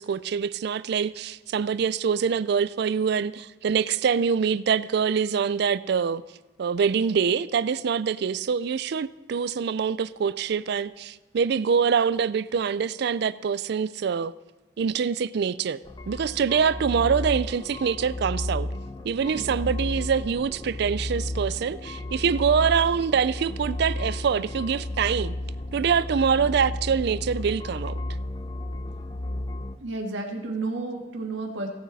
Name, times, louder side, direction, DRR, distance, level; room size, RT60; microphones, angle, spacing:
voice 1, 0.0-6.2 6.6-14.3 14.8-15.8 16.1-18.7 19.0-25.3 25.7-28.0, right 6 dB, 60° right, 0.4 m, -25 dB
sound 1, 15.8-29.7, left 1 dB, 25° left, 0.6 m, -33 dB
voice 2, 29.8-31.7, right 3 dB, 80° right, 1.8 m, -32 dB
16.5 x 7.2 x 4.1 m
head